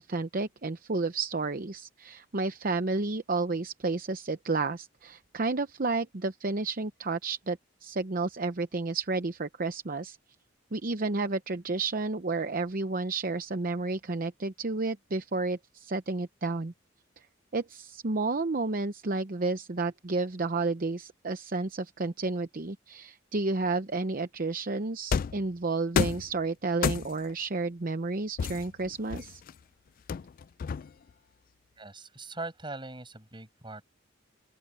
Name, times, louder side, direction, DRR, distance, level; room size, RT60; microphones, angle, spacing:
voice 1, 0.0-10.2 10.7-16.7 17.2-17.3 17.5-29.4, right 3 dB, 45° right, 0.8 m, -31 dB
sound 1, 25.1-25.5 26.0-26.3 26.8-27.3 28.4-29.5 30.1-31.1, left 6 dB, 45° left, 0.3 m, -30 dB
voice 2, 31.8-33.8, right 2 dB, 25° right, 7.2 m, -41 dB
head